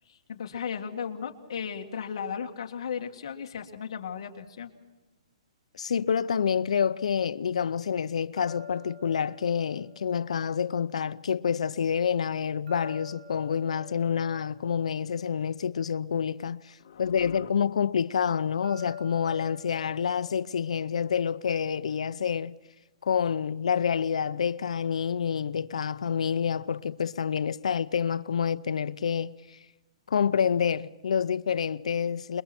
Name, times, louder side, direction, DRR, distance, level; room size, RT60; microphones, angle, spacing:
voice 1, 0.1-4.7 16.8-17.5, left 7 dB, 50° left, 2.0 m, -36 dB
voice 2, 5.7-22.6 23.0-29.6 30.1-32.4, left 7 dB, 75° left, 0.7 m, -28 dB
sound 1, 8.4-11.4 12.7-16.2 18.6-21.7, left 6 dB, 80° right, 3.1 m, -48 dB
29.0 x 22.0 x 4.4 m
hypercardioid pair, 180°, 4 cm